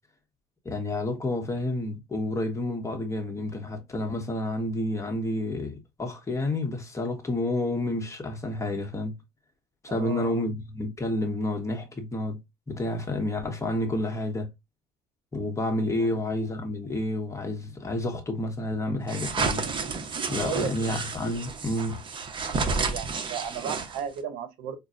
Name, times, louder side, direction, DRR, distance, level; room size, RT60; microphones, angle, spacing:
voice 1, 0.6-9.1 9.8-12.4 12.7-14.5 15.3-19.6 20.3-22.0, left 1 dB, 20° left, 1.0 m, -30 dB
voice 2, 9.9-10.4 16.0-16.2 20.3-21.0 22.6-24.8, right 8 dB, 80° right, 0.7 m, -35 dB
sound 1, 19.1-24.2, right 4 dB, 35° right, 0.8 m, -31 dB
5.2 x 2.2 x 2.5 m
cardioid pair, 115°, 15 cm